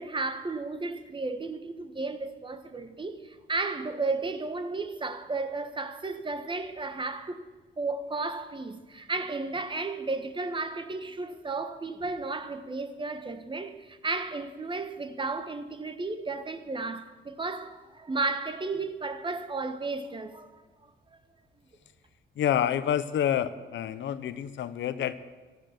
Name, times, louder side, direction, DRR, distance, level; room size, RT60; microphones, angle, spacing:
voice 1, 0.0-7.4 7.8-20.9, right 3 dB, 25° right, 1.3 m, -33 dB
voice 2, 22.4-25.2, left 10 dB, 70° left, 0.9 m, -28 dB
15.0 x 12.5 x 6.6 m
cardioid pair, 90°, 20 cm